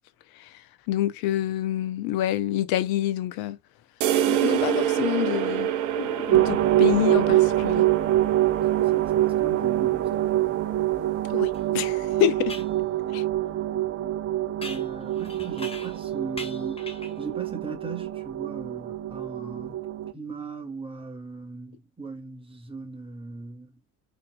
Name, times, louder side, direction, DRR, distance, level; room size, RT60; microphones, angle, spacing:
voice 1, 0.9-3.6 4.2-5.7 6.0-7.8 11.3-12.5 13.1-13.2, left 13 dB, 50° left, 0.7 m, -27 dB
sound 1, 4.0-11.5, right 11 dB, 65° right, 0.8 m, -28 dB
sound 2, 6.3-20.1, right 14 dB, 30° right, 0.4 m, -25 dB
voice 2, 8.5-10.6 12.6-12.9 14.6-16.9 17.2-19.8 20.1-23.7, right 4 dB, 10° right, 1.7 m, -39 dB
sound 3, 11.5-11.6 12.5-12.8 14.6-16.1 16.4-17.2, left 3 dB, 10° left, 1.0 m, -41 dB
3.9 x 3.7 x 2.4 m
figure-of-eight pair, 55°, 46 cm